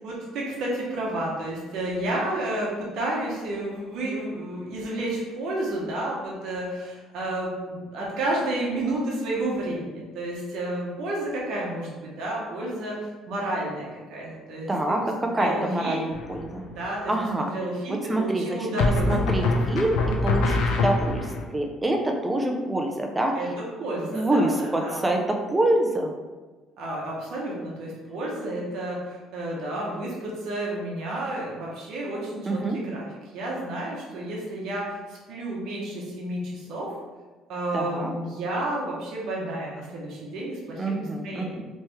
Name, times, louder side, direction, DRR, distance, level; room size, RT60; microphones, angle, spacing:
voice 1, 0.0-15.0 15.4-16.1 16.6-19.5 23.3-25.2 26.8-33.1 33.3-36.9 37.5-41.7, right 1 dB, 60° right, -4 dB, 0.8 m, -31 dB
voice 2, 14.7-16.7 17.1-17.5 17.9-18.6 19.1-23.5 24.1-26.1 32.5-32.8 37.7-38.1 40.8-41.7, right 1 dB, 10° right, 2 dB, 0.4 m, -26 dB
sound 1, 16.1-16.7 18.8-21.4, left 3 dB, 85° left, 0.5 m, -24 dB
3.1 x 3.0 x 3.4 m, 1.3 s
cardioid pair, 170°, 0 cm